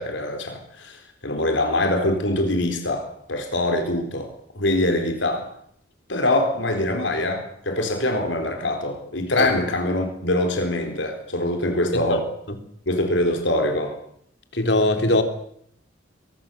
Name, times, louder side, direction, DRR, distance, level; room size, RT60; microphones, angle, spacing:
voice 1, 0.0-5.5 6.1-12.3 12.9-14.0, left 1 dB, 80° left, 4.2 m, -24 dB
voice 2, 14.5-15.2, left 1 dB, 60° left, 3.4 m, -19 dB
23.5 x 21.5 x 7.1 m
head